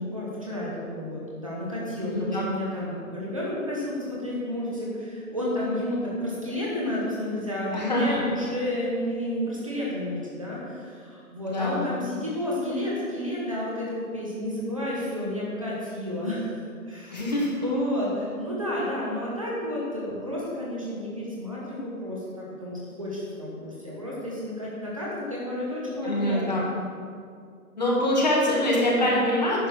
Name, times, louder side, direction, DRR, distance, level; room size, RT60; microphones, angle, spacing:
voice 1, 0.0-17.4 17.6-26.7 28.9-29.2, left 1 dB, 25° right, -6 dB, 1.2 m, -31 dB
voice 2, 2.0-2.4 7.7-8.2 11.5-11.9 17.1-17.5 26.0-26.6 27.8-29.7, left 1 dB, 30° left, -5 dB, 1.9 m, -24 dB
10.5 x 6.1 x 6.3 m, 2.2 s
hypercardioid pair, 180°, 43 cm